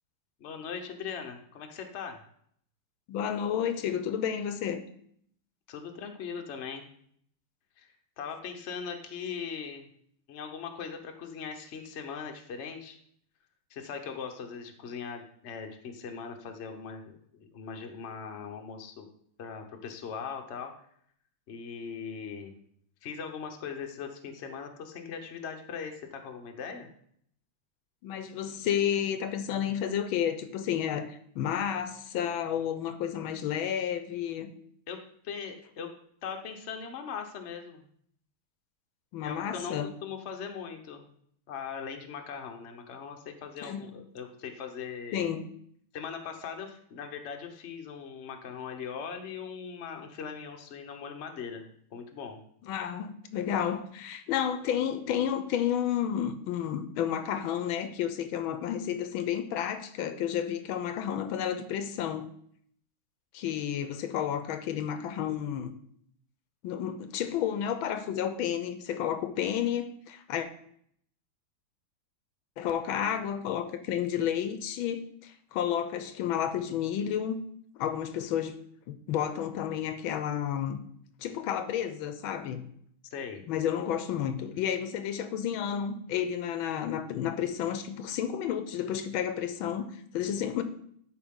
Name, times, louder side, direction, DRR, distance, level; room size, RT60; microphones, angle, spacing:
voice 1, 0.4-2.2 5.7-6.9 7.8-9.9 10.3-13.0 13.7-19.1 19.4-20.7 21.5-22.6 23.0-26.9 34.9-35.0 35.2-35.9 36.2-37.9 39.2-41.1 41.5-45.3 45.9-51.6 51.9-52.4 83.1-83.4, left 6 dB, 50° left, 0.9 m, -40 dB
voice 2, 3.1-4.8 28.0-34.5 39.1-39.9 43.6-43.9 45.1-45.5 52.7-62.3 63.3-65.8 66.6-70.5 72.6-77.5 77.8-78.6 78.9-80.8 81.2-82.7 83.5-90.6, left 9 dB, 80° left, 1.4 m, -31 dB
12.0 x 4.7 x 3.7 m
omnidirectional pair, 2.3 m